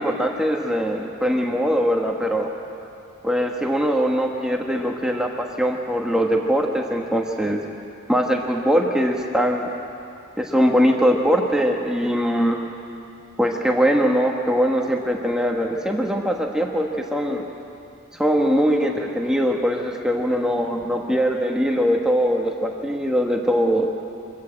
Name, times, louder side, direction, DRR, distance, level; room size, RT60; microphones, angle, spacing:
voice 1, 0.0-2.5 3.2-7.6 8.1-9.7 10.4-12.6 13.4-17.4 18.1-23.9, equal, 5° right, 1 dB, 1.2 m, -21 dB
25.0 x 14.0 x 8.7 m, 2.6 s
head